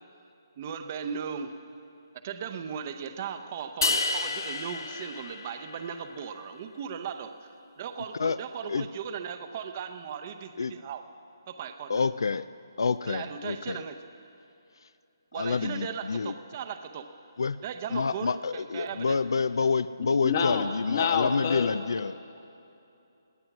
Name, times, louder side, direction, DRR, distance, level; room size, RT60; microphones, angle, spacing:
voice 1, 0.6-1.5 2.2-7.5 7.8-11.1 11.5-12.0 13.1-14.0 15.3-17.1 17.6-19.2, right 7 dB, 30° right, 8 dB, 0.7 m, -37 dB
sound 1, 3.8-6.1, left 3 dB, 60° left, 0.8 m, -30 dB
voice 2, 11.9-12.5 12.8-13.8 15.3-16.3 17.4-17.6 17.9-22.1, left 5 dB, 80° left, 16 dB, 0.3 m, -28 dB
voice 3, 20.0-21.7, left 6 dB, 40° left, 6 dB, 1.2 m, -28 dB
18.0 x 10.5 x 6.1 m, 2.7 s
hypercardioid pair, 165°, 2 cm